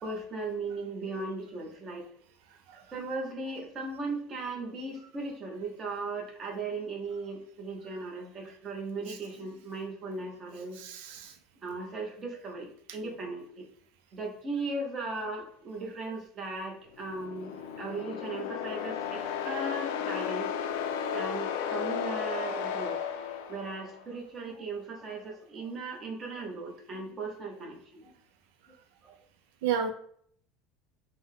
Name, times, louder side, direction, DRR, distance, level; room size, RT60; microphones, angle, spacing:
voice 1, 0.0-2.2 2.7-10.9 11.6-13.7 14.1-20.5 21.1-23.0 23.3-28.1 28.7-28.8 29.0-29.2, right 3 dB, 20° right, -1 dB, 0.9 m, -37 dB
voice 2, 10.8-11.3 29.6-29.9, right 7 dB, 80° right, 5 dB, 0.5 m, -31 dB
sound 1, 17.0-24.0, left 7 dB, 90° left, 0.5 m, -34 dB
5.4 x 2.1 x 3.7 m, 0.62 s
cardioid pair, 170°, 0 cm